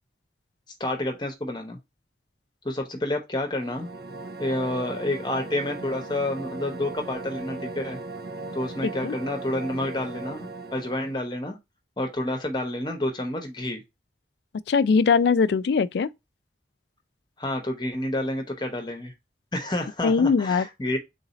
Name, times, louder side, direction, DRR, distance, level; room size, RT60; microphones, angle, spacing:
voice 1, 0.8-1.8 2.6-3.9 4.4-8.0 8.5-11.6 12.0-13.8 17.4-19.1 19.5-21.0, left 1 dB, 25° left, 0.9 m, -29 dB
sound 1, 3.4-11.2, right 3 dB, 55° right, 0.5 m, -38 dB
voice 2, 8.8-9.2 14.7-16.1 20.0-20.7, left 5 dB, 70° left, 0.3 m, -21 dB
3.9 x 2.7 x 4.0 m
head